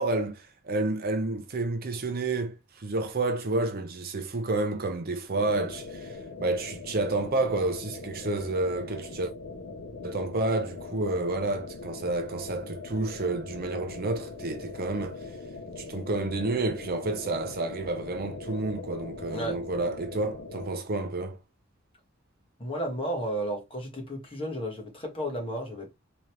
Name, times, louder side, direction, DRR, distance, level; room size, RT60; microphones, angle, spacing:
voice 1, 0.0-9.3 10.0-15.2 15.8-21.4, right 2 dB, 50° right, 0.7 m, -30 dB
sound 1, 5.3-20.7, left 3 dB, 65° left, 0.7 m, -41 dB
voice 2, 22.6-25.9, equal, 25° left, 1.4 m, -33 dB
3.8 x 3.0 x 3.2 m
head